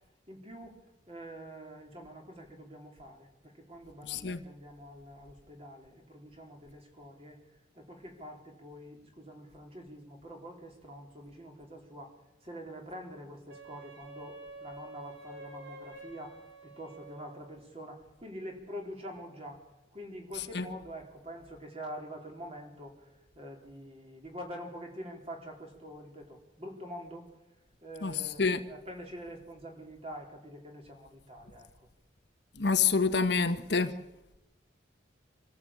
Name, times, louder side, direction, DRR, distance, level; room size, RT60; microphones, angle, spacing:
voice 1, 0.3-7.4 7.7-12.1 12.4-19.6 19.9-23.0 23.4-27.3 27.8-31.9, equal, 30° right, 3.8 m, -46 dB
voice 2, 4.0-4.4 20.3-20.7 28.0-28.6 32.6-33.9, left 5 dB, 60° left, 1.1 m, -28 dB
Wind instrument woodwind instrument, 13.5-17.6, right 2 dB, 75° right, 4.1 m, -48 dB
24.5 x 14.5 x 8.7 m
head